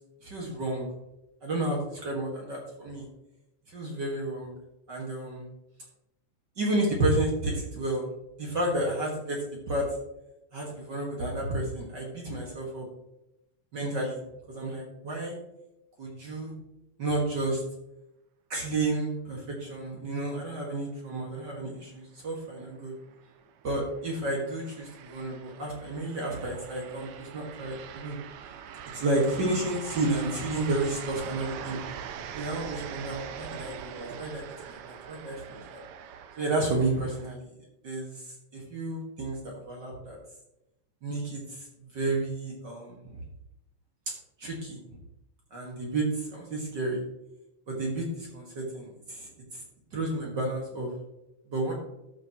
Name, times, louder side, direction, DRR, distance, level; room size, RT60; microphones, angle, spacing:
voice 1, 0.2-0.9 1.4-3.1 3.7-4.6 4.9-5.5 6.6-8.1 8.4-9.9 10.5-12.9 13.7-14.2 14.5-15.4 16.0-16.5 17.0-17.6 18.5-22.9 23.6-28.2 28.9-31.8 32.3-35.6 36.4-37.5 37.8-40.2 41.0-41.6 41.9-43.2 44.4-44.8 45.5-47.0 47.7-49.6 49.9-50.9 51.5-51.7, right 2 dB, 40° right, -2 dB, 1.9 m, -31 dB
sound 1, 22.5-37.4, right 8 dB, 75° right, 1.3 m, -43 dB
13.5 x 6.6 x 2.9 m, 0.88 s
omnidirectional pair, 3.4 m